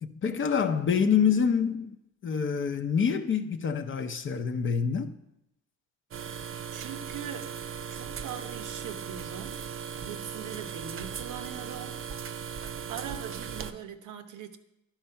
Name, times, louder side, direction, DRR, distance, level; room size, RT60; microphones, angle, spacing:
voice 1, 0.0-1.9 2.2-5.1, left 6 dB, 40° left, 0.6 m, -26 dB
sound 1, 6.1-13.7, right 7 dB, 45° right, 0.6 m, -38 dB
voice 2, 6.7-7.5 7.9-9.6 10.0-12.0 12.5-14.6, right 8 dB, 85° right, 0.8 m, -41 dB
11.0 x 4.4 x 5.6 m
cardioid pair, 90°, 30 cm